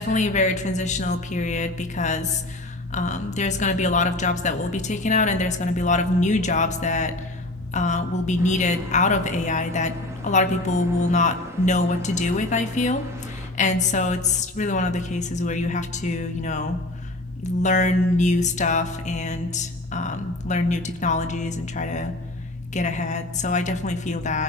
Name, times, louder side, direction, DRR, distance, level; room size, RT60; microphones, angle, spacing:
voice 1, 0.0-24.4, left 2 dB, 35° left, 8 dB, 1.6 m, -24 dB
sound 1, 3.0-9.6, equal, 85° left, 5.0 m, -43 dB
sound 2, 8.4-13.5, equal, 15° right, 2.7 m, -41 dB
26.0 x 15.5 x 9.3 m, 1.1 s
head